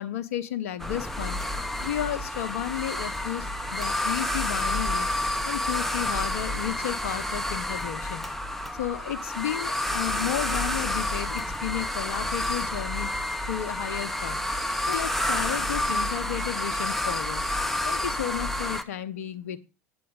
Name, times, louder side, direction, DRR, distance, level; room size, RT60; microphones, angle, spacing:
voice 1, 0.0-1.4 1.8-5.1 5.4-8.3 8.8-13.1 13.5-14.4 14.9-17.4 17.8-19.6, left 11 dB, 75° left, 14 dB, 0.7 m, -33 dB
sound 1, 0.8-18.8, left 1 dB, 5° left, 0.9 m, -29 dB
8.7 x 7.7 x 3.8 m, 0.31 s
hypercardioid pair, 75°, 8 cm